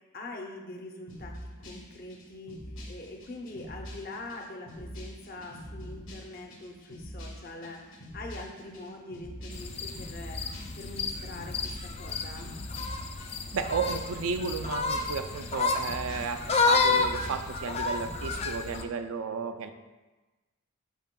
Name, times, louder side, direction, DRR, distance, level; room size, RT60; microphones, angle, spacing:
voice 1, 0.1-2.6 2.9-10.4 10.8-12.6, left 2 dB, 45° left, 2 dB, 0.8 m, -43 dB
sound 1, 1.1-18.8, equal, 65° left, 1.5 m, -45 dB
sound 2, 9.5-18.8, left 4 dB, 30° left, 0.3 m, -30 dB
voice 2, 13.5-19.7, right 5 dB, 70° right, 8 dB, 0.4 m, -33 dB
9.1 x 5.4 x 2.2 m, 1.2 s
head